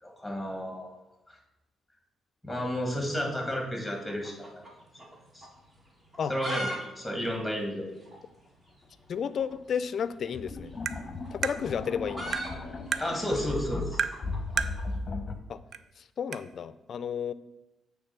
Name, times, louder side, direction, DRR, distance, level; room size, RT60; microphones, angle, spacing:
voice 1, 0.0-0.9 1.3-1.4 2.4-4.6 5.3-5.5 6.3-7.9 13.0-14.0, equal, ahead, 1 dB, 2.2 m, -32 dB
sound 1, 3.8-5.2 5.4-5.5 6.0-6.8 7.0-7.1 7.4-7.5 8.1-8.2 9.3-9.5 10.7-14.9, equal, 25° right, 1.9 m, -39 dB
sound 2, 8.8-8.9 10.2-15.4, left 3 dB, 35° left, 0.8 m, -36 dB
voice 2, 9.1-10.7 11.3-12.4 15.5-15.6 16.2-17.3, left 7 dB, 55° left, 15 dB, 0.4 m, -32 dB
Tap, 10.9-11.0 11.4-11.6 12.3-12.5 12.9-13.1 14.0-14.2 14.6-14.8 15.7-15.8 16.3-16.4, right 7 dB, 60° right, 0.4 m, -30 dB
8.6 x 3.5 x 6.0 m, 0.94 s
cardioid pair, 90°, 0 cm